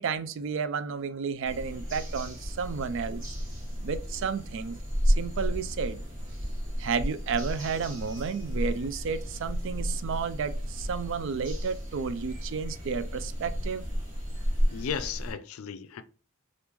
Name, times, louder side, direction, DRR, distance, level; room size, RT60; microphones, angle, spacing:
voice 1, 0.0-3.2 3.8-4.8 5.1-6.0 6.8-13.8, right 5 dB, 60° right, 0.4 m, -32 dB
sound 1, 1.4-15.3, equal, 40° right, 1.4 m, -32 dB
voice 2, 14.7-16.0, left 7 dB, 90° left, 0.4 m, -35 dB
3.5 x 2.5 x 2.9 m
head